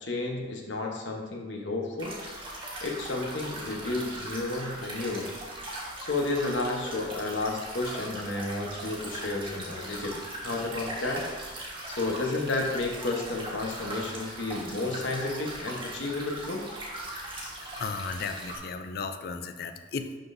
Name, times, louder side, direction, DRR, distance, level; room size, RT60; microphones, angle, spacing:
voice 1, 0.0-2.2 2.8-5.3 6.0-10.2 10.4-11.2 11.9-16.6, left 2 dB, 70° left, 1 dB, 1.0 m, -31 dB
sound 1, 2.0-18.6, right 1 dB, 25° right, 1.4 m, -39 dB
voice 2, 17.8-20.2, left 4 dB, 50° left, 8 dB, 0.4 m, -35 dB
11.5 x 3.9 x 2.6 m, 1.3 s
head